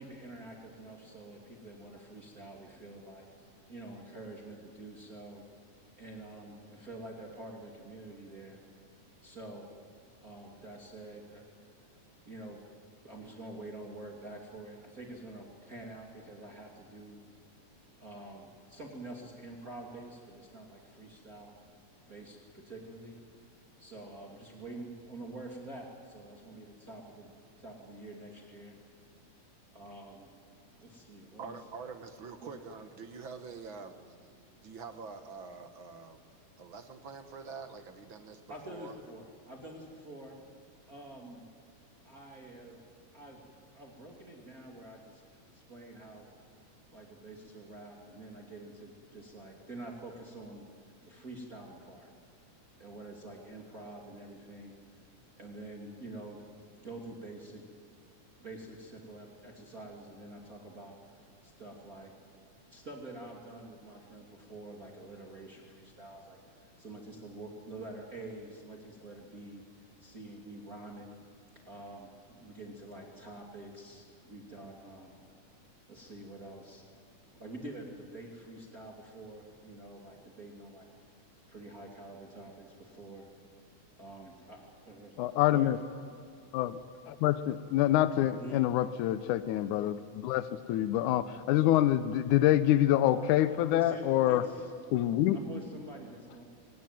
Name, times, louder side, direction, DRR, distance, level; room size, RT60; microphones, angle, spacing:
voice 1, 0.0-5.4 6.0-8.6 9.2-9.7 10.2-11.4 12.2-12.6 13.0-17.2 18.0-21.5 22.1-23.2 23.8-27.3 27.6-28.7 29.7-30.3 30.8-31.6 32.4-32.5 38.5-40.4 40.9-41.5 42.0-42.8 43.1-46.2 46.9-50.7 51.0-52.1 52.8-54.7 55.4-56.4 56.8-57.6 58.4-62.1 62.7-71.1 71.6-75.2 75.9-76.8 77.3-80.9 81.5-83.3 84.0-85.3 85.5-85.7 88.4-88.6 93.7-94.5 95.3-96.4, right 2 dB, 30° right, -1 dB, 2.8 m, -47 dB
voice 2, 31.4-36.2 36.6-39.0, right 5 dB, 50° right, 8 dB, 1.7 m, -46 dB
voice 3, 85.2-85.8 86.5-86.8 87.1-94.4 94.9-95.4, left 13 dB, 80° left, 13 dB, 2.2 m, -26 dB
24.5 x 19.0 x 9.3 m, 2.4 s
omnidirectional pair, 3.6 m